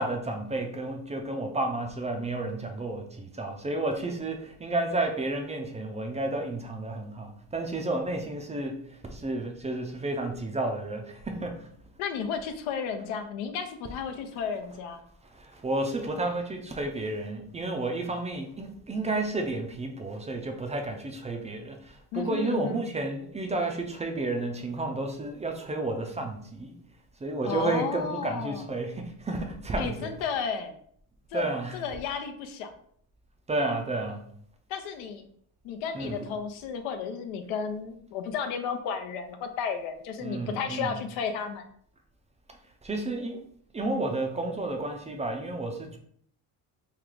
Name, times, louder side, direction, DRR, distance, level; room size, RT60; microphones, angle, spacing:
voice 1, 0.0-11.7 15.3-26.7 27.2-30.1 31.3-31.8 33.5-34.2 35.9-36.3 40.2-41.0 42.8-43.4 43.7-46.0, right 2 dB, 15° right, 4 dB, 0.3 m, -31 dB
voice 2, 12.0-15.0 22.1-22.8 27.4-28.6 29.8-30.7 31.3-32.7 34.7-35.2 35.6-41.6, left 6 dB, 90° left, 7 dB, 0.7 m, -33 dB
3.2 x 2.3 x 3.8 m, 0.63 s
cardioid pair, 100°, 47 cm